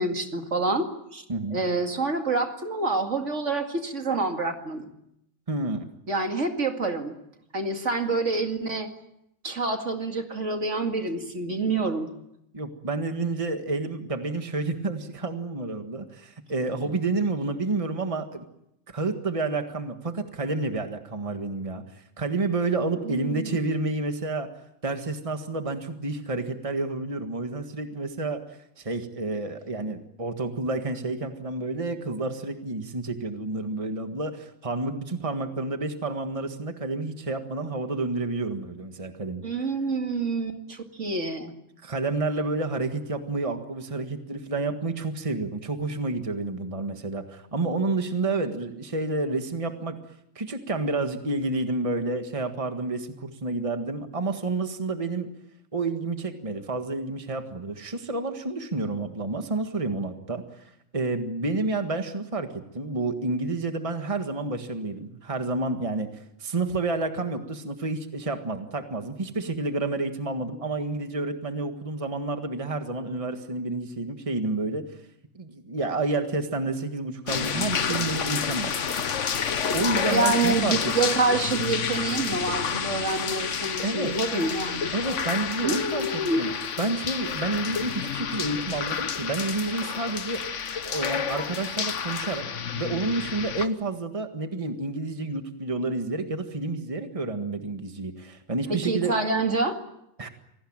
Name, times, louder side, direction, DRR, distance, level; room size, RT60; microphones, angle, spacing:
voice 1, 0.0-1.2 1.5-4.9 6.1-7.2 7.5-8.9 9.4-12.1 23.0-23.6 39.4-41.5 80.1-84.9 85.6-86.4 98.7-99.8, right 3 dB, 65° right, 4 dB, 2.6 m, -27 dB
voice 2, 1.3-1.6 5.5-5.9 12.5-18.4 18.9-24.5 24.8-28.4 28.8-39.4 41.8-50.0 50.3-55.3 55.7-62.5 62.7-66.1 66.4-74.9 75.3-78.7 79.7-80.8 81.0-81.2 83.8-84.1 84.9-86.5 86.8-90.4 90.8-92.4 92.7-99.1 100.2-100.3, right 3 dB, 25° right, 6 dB, 1.7 m, -29 dB
sound 1, 77.3-93.7, left 7 dB, 65° left, 1.4 m, -29 dB
27.0 x 18.5 x 8.8 m, 0.81 s
omnidirectional pair, 1.4 m